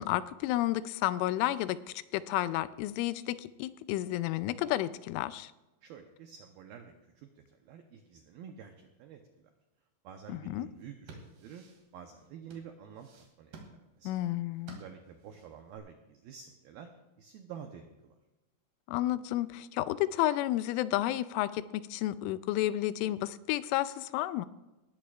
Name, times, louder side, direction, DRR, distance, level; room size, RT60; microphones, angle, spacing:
voice 1, 0.0-1.8 2.1-5.5 10.3-10.7 14.1-14.8 18.9-24.5, left 14 dB, 85° left, 14 dB, 3.1 m, -31 dB
voice 2, 5.8-9.5 10.0-11.7 11.9-13.1 13.4-13.6 14.0-14.1 14.7-16.9 17.2-18.2, right 7 dB, 90° right, 4 dB, 2.1 m, -49 dB
sound 1, 10.7-15.8, right 3 dB, 60° right, 4.1 m, -53 dB
19.5 x 15.0 x 2.4 m, 1.0 s
omnidirectional pair, 5.5 m